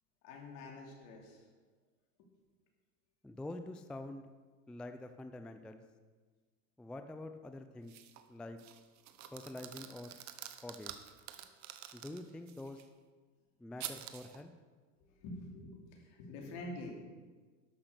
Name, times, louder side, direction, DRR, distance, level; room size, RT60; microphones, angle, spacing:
voice 1, 0.2-1.4 2.2-2.3 15.0-17.0, left 2 dB, 65° left, 0 dB, 2.9 m, -47 dB
voice 2, 3.2-4.3 4.7-5.8 6.8-7.9 8.3-8.6 9.3-10.2 10.6-10.9 11.9-12.9 13.6-14.5, left 2 dB, 5° left, 8 dB, 0.3 m, -46 dB
sound 1, 7.9-8.3 8.6-12.8 13.8-14.4, right 11 dB, 45° right, 0.9 m, -48 dB
12.0 x 5.9 x 6.6 m, 1.4 s
supercardioid pair, 110°, 39 cm